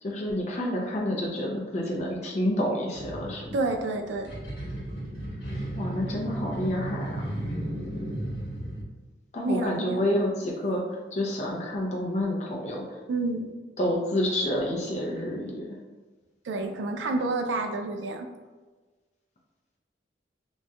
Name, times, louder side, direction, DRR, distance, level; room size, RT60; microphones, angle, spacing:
voice 1, 0.0-3.6 5.7-7.3 9.3-13.0 13.8-15.8, left 1 dB, 35° left, -2 dB, 0.3 m, -29 dB
sound 1, 2.9-8.8, right 1 dB, 70° left, 1.0 m, -34 dB
voice 2, 3.5-4.3 9.4-10.0 13.1-13.5 16.4-18.3, right 2 dB, 75° right, 6 dB, 0.3 m, -29 dB
2.3 x 2.1 x 2.7 m, 1.3 s
head